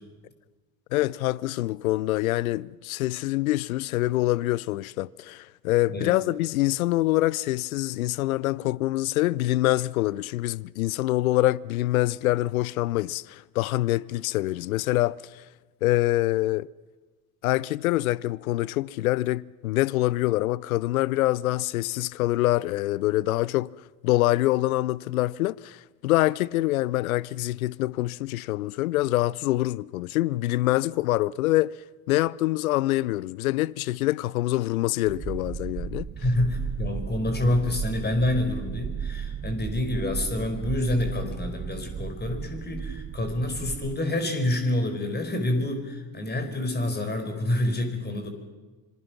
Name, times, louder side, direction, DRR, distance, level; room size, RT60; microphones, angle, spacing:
voice 1, 0.9-15.4 15.8-16.7 17.4-23.7 24.0-31.7 32.1-36.1, left 17 dB, 75° left, 0.6 m, -25 dB
sound 1, 35.1-44.0, right 7 dB, 25° right, 0.9 m, -35 dB
voice 2, 36.2-48.3, left 1 dB, 25° left, 4.8 m, -27 dB
26.0 x 21.5 x 6.0 m
hypercardioid pair, 65°, 42 cm